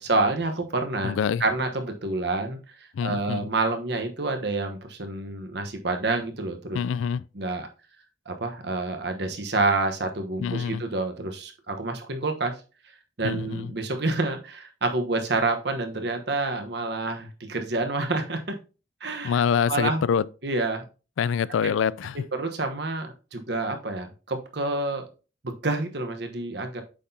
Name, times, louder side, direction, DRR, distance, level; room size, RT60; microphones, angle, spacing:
voice 1, 0.1-1.1 1.4-6.8 7.3-7.7 8.3-12.5 13.2-18.5 19.0-19.4 19.7-20.0 20.4-20.8 22.3-25.1 25.4-26.8, right 2 dB, 60° right, 1.1 m, -28 dB
voice 2, 1.0-1.4 2.9-3.5 6.7-7.2 10.4-10.8 13.2-13.7 19.2-20.2 21.2-22.2, left 7 dB, 90° left, 0.3 m, -25 dB
8.3 x 5.8 x 2.8 m
head